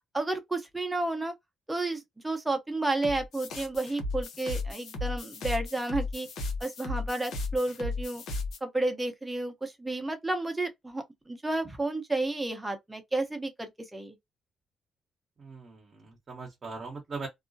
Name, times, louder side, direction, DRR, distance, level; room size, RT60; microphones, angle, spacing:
voice 1, 0.1-1.3 1.7-6.3 6.6-8.2 8.6-14.1, right 2 dB, 10° right, 0.8 m, -31 dB
sound 1, 3.0-8.6, left 2 dB, 75° left, 0.7 m, -35 dB
voice 2, 15.4-17.3, right 3 dB, 45° right, 0.9 m, -40 dB
2.3 x 2.1 x 2.6 m
cardioid pair, 90°, 0 cm